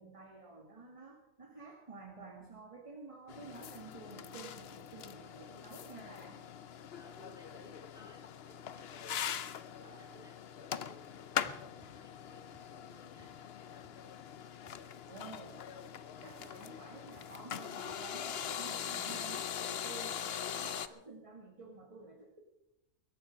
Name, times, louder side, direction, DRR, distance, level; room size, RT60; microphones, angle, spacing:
voice 1, 0.0-6.4 9.7-10.2 11.4-11.6 15.1-22.4, right 3 dB, 25° right, 1 dB, 1.8 m, -51 dB
sound 1, 3.3-20.9, left 9 dB, 55° left, 0.8 m, -42 dB
voice 2, 6.9-16.4 20.1-20.6, left 1 dB, 5° right, 0 dB, 3.5 m, -61 dB
sound 2, 11.8-12.8 13.0-14.2 14.6-16.5 17.0-17.6 17.9-18.1, left 1 dB, 30° left, 6.6 m, -64 dB
21.5 x 12.0 x 5.1 m, 0.88 s
omnidirectional pair, 1.4 m